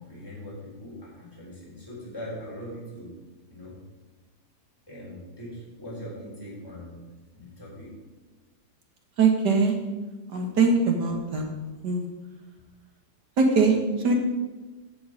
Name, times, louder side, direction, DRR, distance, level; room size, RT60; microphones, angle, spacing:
voice 1, 0.0-3.1 3.5-3.8 4.9-7.0 7.3-7.9, equal, 15° left, -7 dB, 4.1 m, -41 dB
voice 2, 9.2-9.7 10.3-11.5 11.8-12.1 13.4-14.1, right 4 dB, 85° right, 3 dB, 2.1 m, -22 dB
11.0 x 7.1 x 5.2 m, 1.2 s
omnidirectional pair, 1.8 m